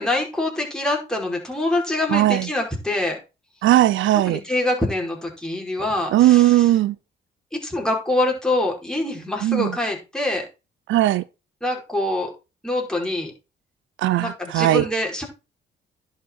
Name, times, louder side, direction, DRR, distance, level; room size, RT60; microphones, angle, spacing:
voice 1, 0.0-3.2 4.3-6.7 7.6-10.4 11.6-12.3 12.6-13.3 14.2-15.2, left 1 dB, 5° left, 5.2 m, -25 dB
voice 2, 2.1-2.5 3.6-4.4 6.1-7.0 9.4-9.7 10.9-11.2 14.0-14.8, right 14 dB, 75° right, 0.6 m, -18 dB
10.5 x 6.7 x 4.6 m
cardioid pair, 90°, 20 cm